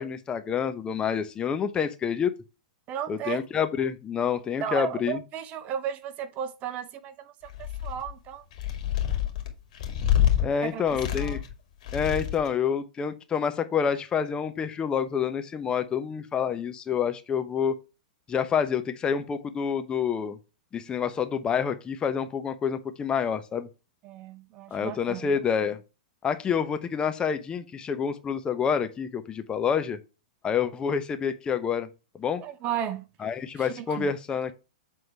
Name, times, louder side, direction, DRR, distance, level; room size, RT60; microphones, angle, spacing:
voice 1, 0.0-2.3 3.1-5.2 10.4-11.4 11.9-17.7 18.3-20.4 20.7-23.7 24.7-25.8 26.2-30.0 30.4-31.9 32.2-32.4 33.2-34.5, left 7 dB, 20° left, 0.8 m, -28 dB
voice 2, 2.9-3.4 4.6-7.3 7.6-8.4 10.6-11.4 24.0-25.3 32.4-33.0 33.6-34.1, right 9 dB, 35° right, 1.0 m, -34 dB
sound 1, 7.5-8.1 8.5-10.4 10.9-11.5 11.8-12.5, left 11 dB, 60° left, 2.3 m, -27 dB
8.0 x 3.8 x 4.6 m
hypercardioid pair, 110°, 4 cm